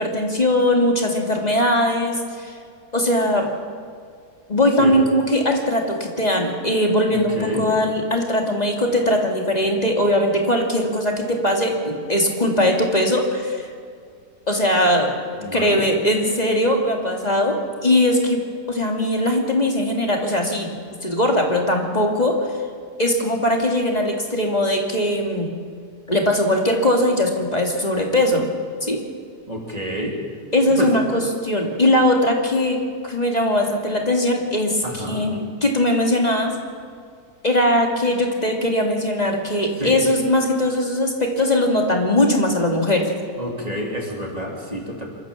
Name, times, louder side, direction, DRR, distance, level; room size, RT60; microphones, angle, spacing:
voice 1, 0.0-2.5 2.9-3.5 4.5-13.7 14.5-15.1 15.4-17.6 17.8-18.4 18.7-20.7 21.0-22.5 23.0-25.5 26.1-28.5 28.8-29.0 30.5-32.8 33.0-36.5 37.4-43.1, left 1 dB, 25° left, 1 dB, 2.5 m, -20 dB
voice 2, 7.1-7.7 15.4-15.9 29.5-30.2 30.8-30.9 34.8-35.3 39.8-40.0 43.4-45.1, equal, 25° right, -1 dB, 3.1 m, -28 dB
27.0 x 13.5 x 7.2 m, 2.2 s
omnidirectional pair, 1.7 m